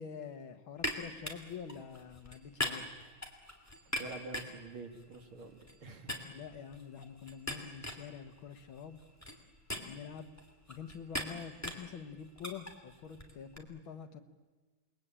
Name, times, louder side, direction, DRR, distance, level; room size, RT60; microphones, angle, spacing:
voice 1, 0.0-2.9 6.3-9.0 9.8-10.3 10.7-14.2, left 7 dB, 75° left, 8 dB, 2.2 m, -46 dB
sound 1, 0.8-5.8 6.1-13.6, left 1 dB, 10° left, 2.8 m, -42 dB
voice 2, 4.0-6.2, right 3 dB, 85° right, 4 dB, 3.3 m, -47 dB
28.5 x 21.0 x 8.9 m, 1.4 s
omnidirectional pair, 2.2 m